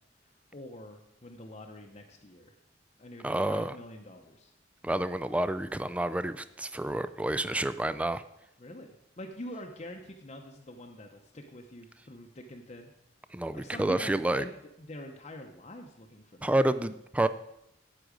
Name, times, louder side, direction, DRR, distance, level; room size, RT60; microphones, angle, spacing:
voice 1, 0.5-2.5 3.0-4.5 8.6-12.9 13.5-16.5, left 1 dB, 35° left, 2 dB, 0.8 m, -45 dB
voice 2, 3.2-3.8 4.8-8.2 13.3-14.4 16.4-17.3, right 1 dB, 5° right, 14 dB, 0.3 m, -29 dB
9.6 x 7.7 x 5.1 m, 0.82 s
head